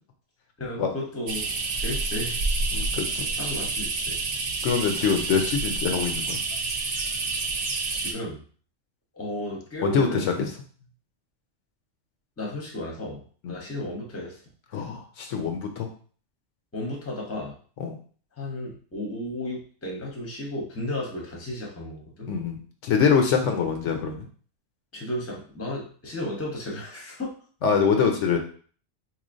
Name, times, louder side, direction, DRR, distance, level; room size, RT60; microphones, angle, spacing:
voice 1, 0.6-1.5 1.8-2.4 3.4-4.2 7.9-8.4 9.1-10.5 12.4-13.2 13.5-14.4 16.7-17.6 18.4-22.3 24.9-27.3, left 1 dB, 15° left, -2 dB, 0.7 m, -34 dB
sound 1, 1.3-8.1, right 3 dB, 65° right, 0.3 m, -28 dB
voice 2, 2.7-3.2 4.6-6.4 9.8-10.5 13.4-13.5 14.7-15.9 17.8-17.9 22.3-24.3 27.6-28.4, left 6 dB, 75° left, 4 dB, 0.9 m, -24 dB
4.0 x 3.1 x 2.6 m, 0.43 s
omnidirectional pair, 1.3 m